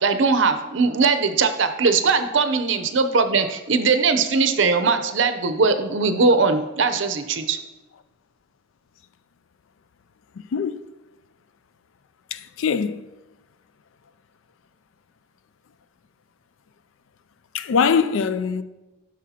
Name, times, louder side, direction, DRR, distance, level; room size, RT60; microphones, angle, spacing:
voice 1, 0.0-7.6, right 4 dB, 65° right, 0.6 m, -20 dB
voice 2, 10.4-10.8 12.3-13.1 17.5-18.6, left 6 dB, 75° left, 0.4 m, -22 dB
12.0 x 6.2 x 2.9 m
head